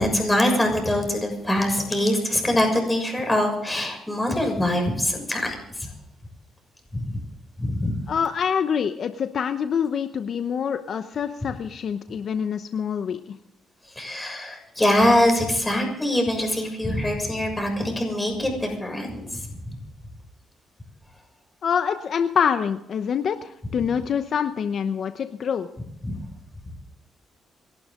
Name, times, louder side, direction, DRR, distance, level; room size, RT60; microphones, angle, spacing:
voice 1, 0.0-5.9 6.9-7.2 7.6-8.0 13.9-19.4 26.0-26.1, left 1 dB, 10° left, 2 dB, 6.6 m, -23 dB
voice 2, 8.1-13.4 21.6-25.7, left 7 dB, 55° left, 9 dB, 0.8 m, -26 dB
27.0 x 12.0 x 3.8 m, 0.82 s
cardioid pair, 90°, 0 cm